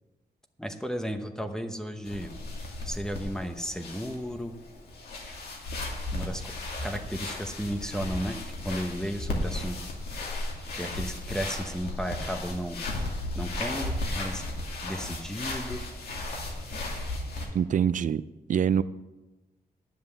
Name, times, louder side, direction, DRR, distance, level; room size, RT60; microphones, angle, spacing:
voice 1, 0.6-2.3 2.8-4.6 6.1-6.5 6.8-8.4 8.6-9.8 10.7-12.8 13.3-14.4 14.8-15.8, equal, 5° left, 6 dB, 0.9 m, -34 dB
sound 1, 2.0-17.5, left 2 dB, 90° left, 2.6 m, -35 dB
voice 2, 17.5-18.8, right 8 dB, 55° right, 16 dB, 0.4 m, -25 dB
10.5 x 7.7 x 7.1 m, 1.1 s
wide cardioid pair, 135°, 16 cm